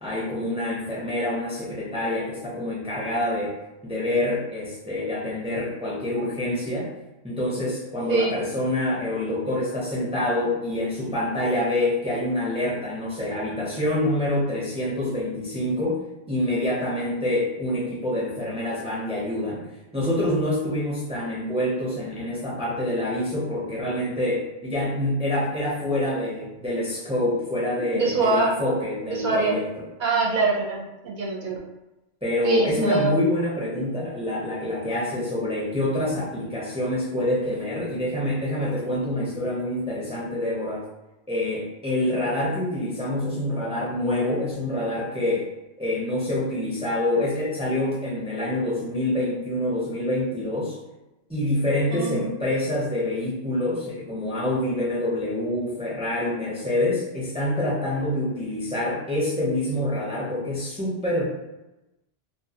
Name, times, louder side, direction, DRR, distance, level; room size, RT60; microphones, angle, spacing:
voice 1, 0.0-3.5 3.8-6.9 7.2-19.7 19.9-29.6 32.2-40.8 41.3-45.5 45.8-50.8 51.3-61.2, left 1 dB, 10° right, -6 dB, 0.5 m, -26 dB
voice 2, 27.7-28.5 29.1-29.6 30.0-31.6 32.4-33.1 51.9-52.3, right 3 dB, 55° right, -2 dB, 0.6 m, -24 dB
2.2 x 2.2 x 2.7 m, 0.99 s
omnidirectional pair, 1.1 m